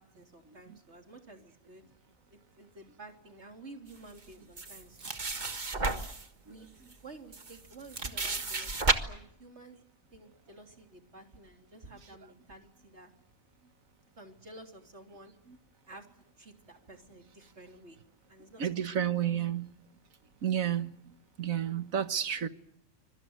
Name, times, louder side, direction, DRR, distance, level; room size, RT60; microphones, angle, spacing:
voice 1, 0.0-1.8 2.3-5.0 5.8-6.1 6.4-6.7 7.0-9.8 10.1-13.1 14.2-15.3 15.9-16.1 16.4-18.0 18.3-18.9, right 2 dB, 55° right, 3.6 m, -52 dB
sound 1, 4.6-6.3 6.9-7.0 7.3-8.9, right 3 dB, 35° right, 1.7 m, -32 dB
voice 2, 18.6-19.7 20.4-20.9 21.4-22.5, right 9 dB, 80° right, 1.8 m, -30 dB
26.0 x 23.5 x 8.0 m
omnidirectional pair, 1.4 m